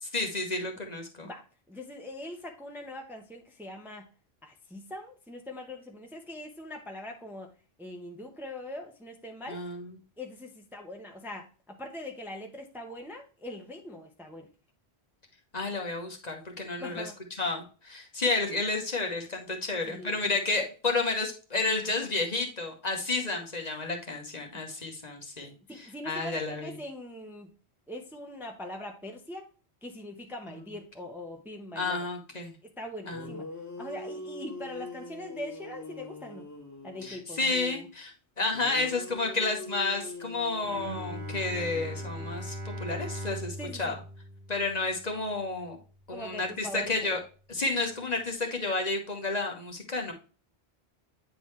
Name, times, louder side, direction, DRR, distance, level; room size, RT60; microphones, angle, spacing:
voice 1, 0.0-1.3 9.5-9.9 15.5-17.0 17.3-25.5 26.1-26.7 31.7-32.5 33.1-33.3 37.0-44.0 44.5-45.8 46.1-47.2 47.5-50.1, left 3 dB, 40° left, 2 dB, 1.2 m, -31 dB
voice 2, 1.2-4.1 4.4-7.5 7.8-9.6 10.2-14.5 16.8-17.2 19.9-20.3 24.5-24.6 25.7-27.5 27.9-29.5 29.8-32.1 32.6-33.4 33.8-36.5 36.8-37.9 43.6-44.0 46.1-47.0, left 1 dB, ahead, 3 dB, 0.8 m, -42 dB
sound 1, 32.8-32.9 33.1-37.3 38.5-42.6, left 2 dB, 15° left, 1.9 m, -43 dB
Bowed string instrument, 40.6-45.9, equal, 45° right, 1.3 m, -40 dB
8.8 x 3.9 x 3.1 m, 0.36 s
omnidirectional pair, 1.1 m